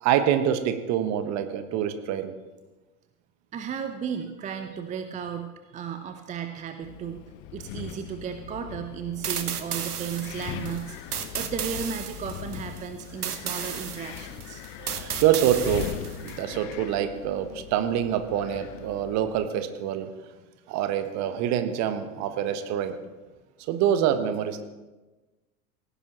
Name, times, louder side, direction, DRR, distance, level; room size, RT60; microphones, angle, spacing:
voice 1, 0.0-2.3 14.8-15.9 16.2-20.1 20.7-23.0 23.6-24.6, right 10 dB, 35° right, 9 dB, 1.2 m, -26 dB
voice 2, 3.5-7.2 7.5-14.6, right 7 dB, 15° right, 7 dB, 0.6 m, -35 dB
Wind, 6.8-19.5, left 13 dB, 30° left, 0.5 m, -40 dB
sound 1, 9.2-16.4, right 7 dB, 75° right, 1.1 m, -34 dB
17.0 x 15.0 x 3.0 m, 1.2 s
figure-of-eight pair, 85°, 46 cm